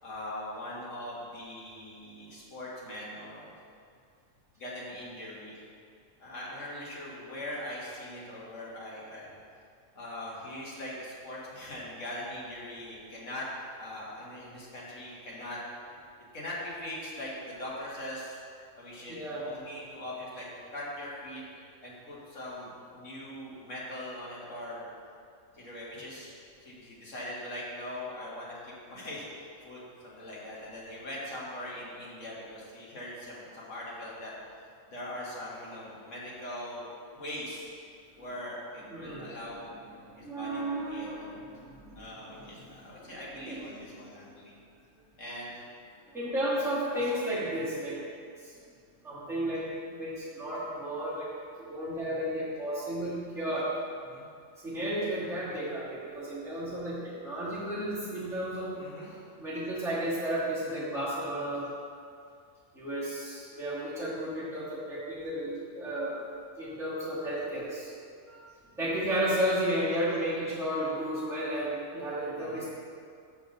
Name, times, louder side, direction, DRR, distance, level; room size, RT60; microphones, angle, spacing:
voice 1, 0.0-3.5 4.6-5.6 6.2-9.3 10.0-13.5 13.8-15.6 16.3-18.4 18.8-20.5 20.7-21.4 21.8-24.9 25.5-26.3 26.6-34.3 34.9-37.7 38.2-39.7 40.2-41.3 42.0-42.6 42.8-44.5 45.2-45.6 54.1-54.3 58.8-59.1 68.9-69.1 72.4-72.7, left 1 dB, 70° left, -6 dB, 2.2 m, -41 dB
voice 2, 19.1-19.4 38.9-39.7 40.0-43.2 43.4-44.1 46.1-48.0 48.4-48.5 49.0-51.3 51.6-53.7 54.6-58.7 59.4-61.7 62.7-66.2 66.6-67.9 68.3-68.4 68.8-72.7, right 1 dB, ahead, -11 dB, 2.2 m, -33 dB
6.7 x 5.5 x 6.5 m, 2.3 s
omnidirectional pair, 1.3 m